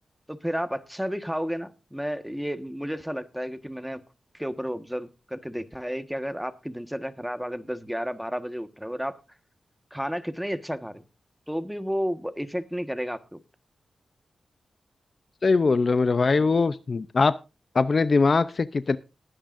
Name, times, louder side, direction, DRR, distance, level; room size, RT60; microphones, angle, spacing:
voice 1, 0.3-4.0 4.3-9.2 9.9-11.0 11.5-13.4, equal, 5° right, 10 dB, 1.4 m, -32 dB
voice 2, 15.4-17.3 17.7-19.0, left 4 dB, 50° left, 15 dB, 0.6 m, -21 dB
19.5 x 9.9 x 2.6 m, 0.29 s
cardioid pair, 75°, 0 cm